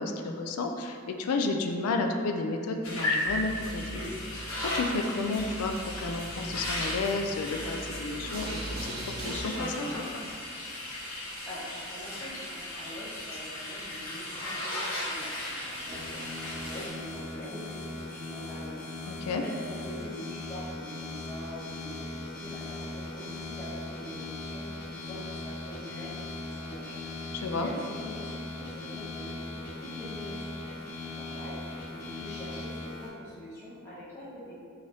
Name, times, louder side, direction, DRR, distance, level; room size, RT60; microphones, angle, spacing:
voice 1, 0.0-4.0 4.3-8.9 9.2-10.2 19.1-19.4 27.3-27.7, left 3 dB, 85° left, 4 dB, 0.3 m, -32 dB
sound 1, 2.8-16.9, left 1 dB, 65° left, 0.8 m, -36 dB
sound 2, 3.2-9.4, right 1 dB, 45° right, 0.5 m, -40 dB
voice 2, 11.1-18.7 19.0-30.8 31.1-34.6, equal, 10° left, -11 dB, 0.6 m, -44 dB
sound 3, 15.9-33.1, left 2 dB, 45° left, 1.2 m, -39 dB
3.7 x 2.6 x 3.3 m, 2.3 s
head